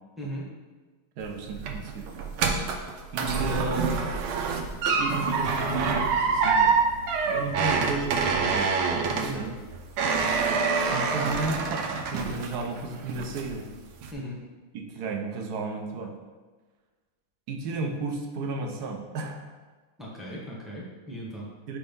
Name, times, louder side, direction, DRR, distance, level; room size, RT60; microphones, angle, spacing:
voice 1, 1.2-2.1 3.1-4.0 5.0-6.8 7.2-8.8 9.2-9.5 10.8-13.7 14.7-16.1 17.5-19.4 21.7-21.8, right 3 dB, 60° right, 3 dB, 1.1 m, -33 dB
sound 1, 1.2-12.8 13.1-13.6 14.0-14.1, right 5 dB, 85° right, 1.5 m, -26 dB
voice 2, 9.2-9.5 14.1-14.4 20.0-21.5, equal, ahead, -4 dB, 0.8 m, -37 dB
4.9 x 4.4 x 5.4 m, 1.3 s
omnidirectional pair, 2.3 m